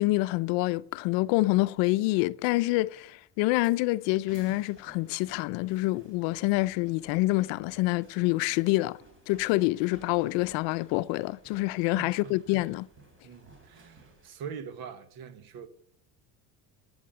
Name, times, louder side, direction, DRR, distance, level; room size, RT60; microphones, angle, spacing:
voice 1, 0.0-9.0 9.3-12.9, left 20 dB, 75° left, 0.6 m, -27 dB
sound 1, 3.6-14.3, right 1 dB, 25° right, 3.8 m, -57 dB
voice 2, 11.9-12.7 13.2-15.7, right 7 dB, 55° right, 1.5 m, -43 dB
11.5 x 8.8 x 9.2 m
supercardioid pair, 110°, 44 cm